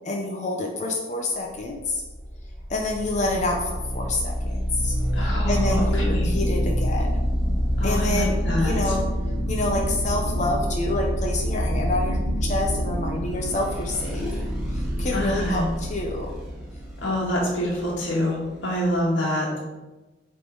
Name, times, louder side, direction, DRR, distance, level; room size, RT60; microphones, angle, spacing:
voice 1, 0.0-2.0 2.7-7.1 7.8-9.1 9.5-14.3 14.7-16.3, left 2 dB, 40° left, 1 dB, 0.7 m, -28 dB
sound 1, 1.7-19.0, equal, 5° right, 1.9 m, -27 dB
voice 2, 5.1-6.3 7.8-8.9 15.1-15.6 17.0-19.6, equal, 80° left, -5 dB, 1.8 m, -26 dB
8.1 x 3.9 x 3.9 m, 1.1 s
head